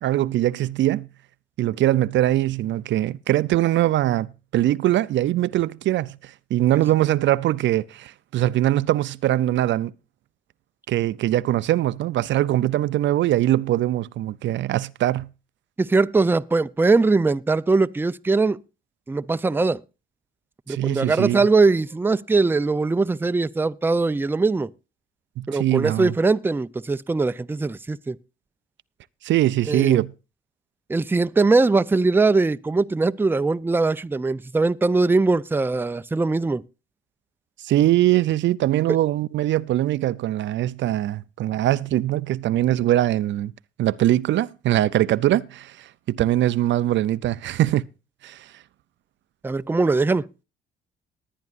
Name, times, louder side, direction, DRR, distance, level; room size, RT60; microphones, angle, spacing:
voice 1, 0.0-1.1 1.6-9.9 10.9-15.3 20.7-21.5 25.4-26.1 29.2-30.1 37.6-43.5 43.8-47.8 48.2-48.5, right 14 dB, 70° right, 0.5 m, -22 dB
voice 2, 15.8-18.6 19.1-19.8 20.7-24.7 25.5-28.2 29.7-30.0 30.9-36.6 49.4-50.2, right 3 dB, 10° right, 0.5 m, -21 dB
20.0 x 9.5 x 2.5 m
cardioid pair, 90°, 20 cm